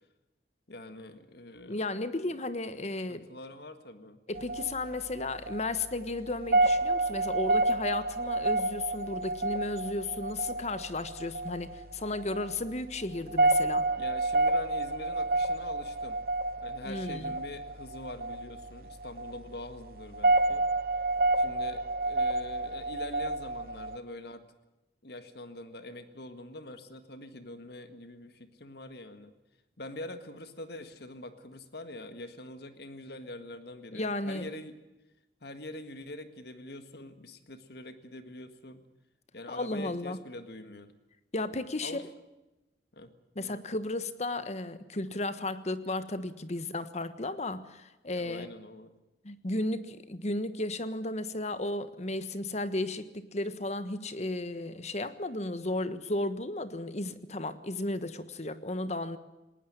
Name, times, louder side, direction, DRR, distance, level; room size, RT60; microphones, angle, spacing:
voice 1, 0.7-1.8 3.1-4.2 14.0-16.2 16.6-20.7 21.4-24.4 25.0-29.3 29.8-34.8 35.4-38.8 39.3-40.9 41.8-42.0 42.9-43.1 43.4-43.6 48.1-48.9, left 1 dB, 65° left, 10 dB, 1.8 m, -44 dB
voice 2, 1.6-3.2 4.3-13.9 16.8-17.3 33.9-34.5 39.5-40.2 41.3-42.0 43.3-48.5 49.2-59.2, left 2 dB, 40° left, 12 dB, 1.4 m, -34 dB
sound 1, 4.3-24.0, right 2 dB, 55° right, 1.1 m, -29 dB
19.5 x 19.0 x 8.9 m, 1.0 s
head